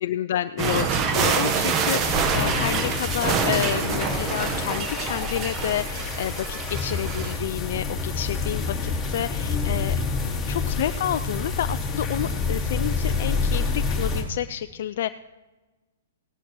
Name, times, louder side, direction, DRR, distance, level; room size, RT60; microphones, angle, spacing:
voice 1, 0.0-15.1, left 11 dB, 60° left, 9 dB, 0.3 m, -29 dB
sound 1, 0.6-7.4, right 6 dB, 30° right, 1.0 m, -26 dB
sound 2, 2.0-14.2, left 4 dB, 10° left, 3.0 m, -28 dB
17.5 x 10.5 x 3.1 m, 1.2 s
hypercardioid pair, 125°, 0 cm